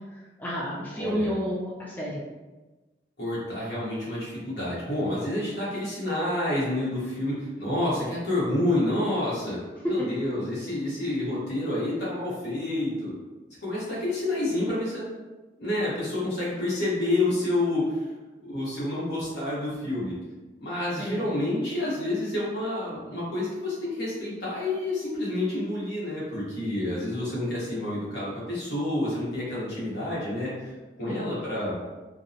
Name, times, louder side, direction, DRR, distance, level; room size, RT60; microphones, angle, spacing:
voice 1, 0.4-2.2 21.0-21.2 31.0-31.3, equal, 10° left, -6 dB, 0.4 m, -31 dB
voice 2, 1.0-1.3 3.2-9.6 9.8-13.1 13.6-15.1 15.6-18.1 18.4-20.1 20.6-30.7 31.0-31.7, left 1 dB, 80° left, -8 dB, 1.1 m, -29 dB
2.7 x 2.1 x 2.6 m, 1.2 s
head